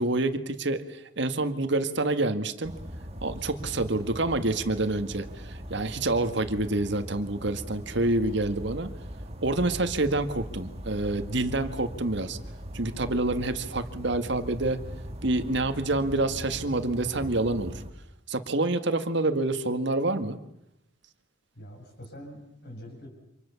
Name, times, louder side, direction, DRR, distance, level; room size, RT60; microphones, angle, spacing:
voice 1, 0.0-2.7 3.2-8.9 9.4-12.4 12.7-14.8 15.2-17.8 18.3-20.4, right 2 dB, 60° right, 9 dB, 1.9 m, -27 dB
sound 1, 2.6-17.9, equal, 30° right, 2.0 m, -40 dB
voice 2, 3.3-3.9 9.5-9.9 21.5-23.1, equal, 55° left, 0 dB, 7.4 m, -44 dB
29.0 x 26.5 x 7.1 m, 0.81 s
head